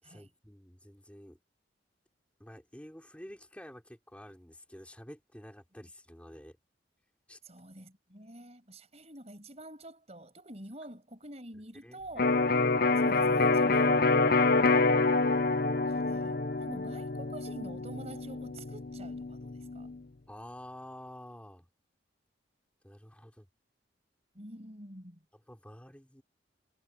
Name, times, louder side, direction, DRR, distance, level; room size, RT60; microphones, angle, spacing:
voice 1, 0.0-1.4 2.4-6.6 7.3-7.4 11.8-12.0 20.3-21.7 22.8-23.5 25.3-26.2, equal, 5° left, 3.7 m, -49 dB
voice 2, 7.4-12.4 12.9-14.3 15.9-19.9 24.4-25.2, right 1 dB, 35° right, 6.9 m, -48 dB
Electric guitar, 12.2-20.0, left 3 dB, 50° left, 0.8 m, -27 dB
head